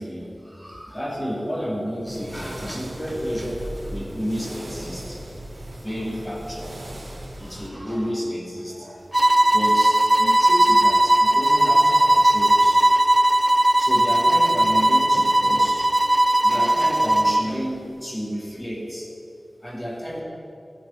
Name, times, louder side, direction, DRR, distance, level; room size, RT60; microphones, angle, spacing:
voice 1, 0.0-5.2 5.7-6.8 7.4-12.8 13.2-13.3 13.8-15.9 16.4-19.1 19.6-20.2, equal, 20° left, -3 dB, 2.6 m, -31 dB
sound 1, 2.1-7.7, right 1 dB, 50° right, 3.6 m, -37 dB
sound 2, 9.1-17.5, right 1 dB, 25° right, 0.4 m, -18 dB
13.0 x 6.9 x 9.9 m, 2.7 s
wide cardioid pair, 60°, 0 cm